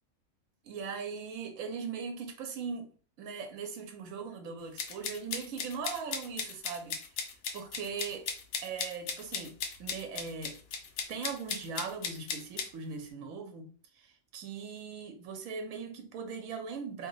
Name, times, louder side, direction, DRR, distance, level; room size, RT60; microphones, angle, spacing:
voice 1, 0.6-2.9 3.2-7.0 7.2-8.3 8.6-10.6 11.1-17.1, right 5 dB, 80° right, 1.1 m, -40 dB
sound 1, 4.8-12.7, left 6 dB, 65° left, 0.8 m, -37 dB
2.7 x 2.2 x 3.8 m
omnidirectional pair, 1.4 m